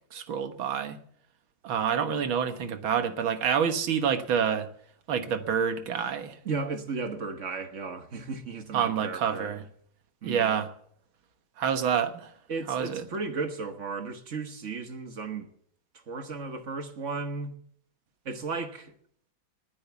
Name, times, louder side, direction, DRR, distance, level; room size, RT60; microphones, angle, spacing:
voice 1, 0.1-1.0 1.6-4.7 5.1-6.4 8.7-9.6 10.2-10.7 11.6-12.3 12.7-13.0, right 7 dB, 80° right, 2.1 m, -27 dB
voice 2, 6.4-9.5 10.2-10.6 12.5-15.5 15.9-17.5 18.2-18.9, right 4 dB, 40° right, 1.5 m, -35 dB
19.5 x 8.6 x 7.0 m
omnidirectional pair, 2.2 m